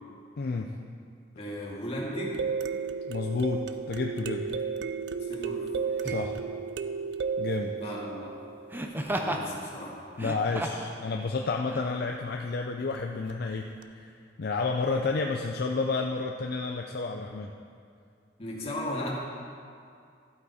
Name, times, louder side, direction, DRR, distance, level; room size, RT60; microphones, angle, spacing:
voice 1, 0.4-0.7 3.1-4.5 6.0-6.4 7.4-7.7 10.2-13.7 14.0-14.1 14.4-17.5, left 4 dB, 55° left, 2 dB, 0.5 m, -30 dB
voice 2, 1.4-2.3 5.2-5.7 7.7-8.3 9.0-10.0 18.4-19.2, equal, 35° left, -4 dB, 2.0 m, -36 dB
sound 1, 2.2-9.1 13.3-13.4 13.8-13.9, right 5 dB, 65° right, 0.4 m, -33 dB
Laughter, 4.5-4.7 6.0-6.4 8.7-9.5 10.1-10.9 11.7-11.8, right 1 dB, 10° right, 0.6 m, -33 dB
13.0 x 8.3 x 4.2 m, 2.3 s
head